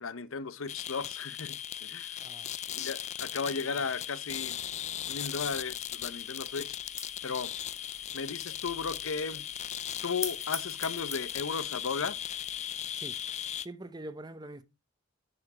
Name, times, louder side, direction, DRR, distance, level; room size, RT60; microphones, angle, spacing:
voice 1, 0.0-2.2 2.7-4.6 5.1-6.8 7.2-7.5 8.1-9.4 10.0-12.2, left 5 dB, 70° left, 0.8 m, -35 dB
sound 1, 0.7-13.7, left 10 dB, 35° left, 0.4 m, -38 dB
voice 2, 2.2-2.5 3.7-3.8 13.0-14.6, right 1 dB, 20° right, 0.7 m, -45 dB
sound 2, 4.4-12.6, left 5 dB, 15° left, 1.2 m, -46 dB
10.5 x 4.8 x 4.9 m
head